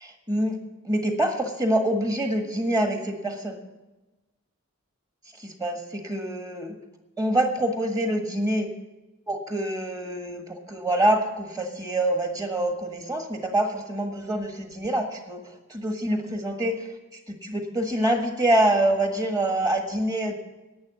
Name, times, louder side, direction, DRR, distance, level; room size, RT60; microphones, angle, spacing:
voice 1, 0.3-0.6 0.8-3.6 5.4-6.7 7.2-8.7 9.3-20.3, right 1 dB, 15° right, 4 dB, 1.5 m, -26 dB
11.0 x 9.5 x 8.3 m, 1.1 s
head